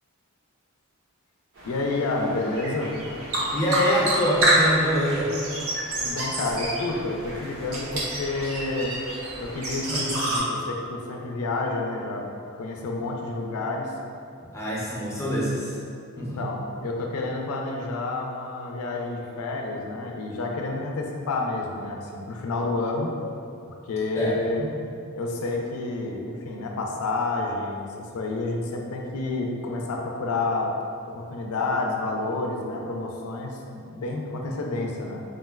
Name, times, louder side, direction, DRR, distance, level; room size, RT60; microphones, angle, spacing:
sound 1, 1.5-10.4, right 1 dB, 70° right, 0.6 m, -28 dB
voice 1, 1.6-2.9 6.0-8.9 9.4-12.3 12.6-13.9 16.2-23.1 23.8-24.7 25.1-30.7 31.1-35.2, left 2 dB, 90° left, 1 dB, 0.4 m, -29 dB
voice 2, 3.5-5.3 9.9-10.1 14.5-15.8 16.2-16.4 24.2-24.7, equal, 15° left, -7 dB, 0.5 m, -25 dB
3.5 x 2.1 x 2.2 m, 2.5 s
head